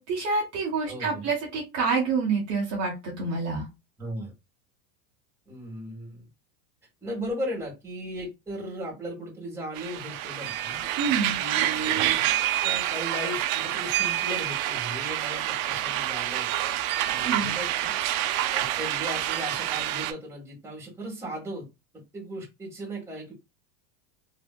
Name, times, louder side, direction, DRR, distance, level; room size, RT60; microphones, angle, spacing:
voice 1, 0.0-3.7 11.0-11.4 17.2-17.5, right 4 dB, 35° right, -3 dB, 1.1 m, -27 dB
voice 2, 0.9-1.3 4.0-4.3 5.5-6.2 7.0-10.8 11.4-12.1 12.6-16.7 17.1-17.9 18.5-21.7 22.1-23.3, right 1 dB, 5° right, -3 dB, 1.5 m, -36 dB
sound 1, 9.7-20.1, right 13 dB, 65° right, 0.6 m, -27 dB
3.2 x 2.7 x 2.2 m, 0.24 s
supercardioid pair, 140°, 46 cm